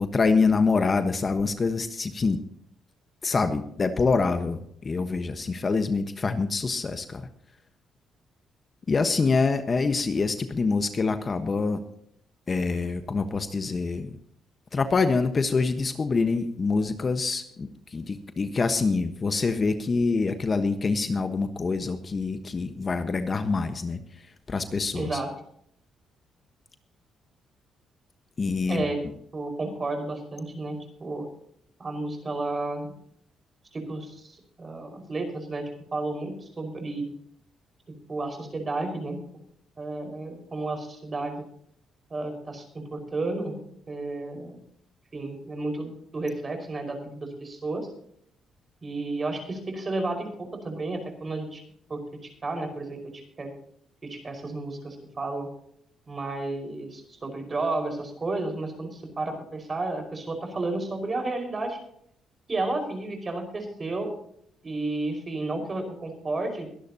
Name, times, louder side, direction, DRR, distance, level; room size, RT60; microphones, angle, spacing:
voice 1, 0.0-2.4 3.2-7.3 8.9-11.8 12.5-14.1 14.7-25.2 28.4-28.8, left 4 dB, 35° left, 9 dB, 1.3 m, -25 dB
voice 2, 24.9-25.3 28.7-29.1 29.3-31.2 31.8-32.9 33.7-35.6 35.9-37.1 38.1-39.2 39.8-41.3 42.1-43.5 43.9-44.6 45.1-47.9 48.8-51.6 51.9-52.0 52.4-53.0 53.4-53.5 54.0-55.5 56.1-61.8 62.5-64.1 64.6-66.7, right 2 dB, 30° right, 5 dB, 5.2 m, -32 dB
22.5 x 11.5 x 2.9 m, 0.68 s
cardioid pair, 90°, 0 cm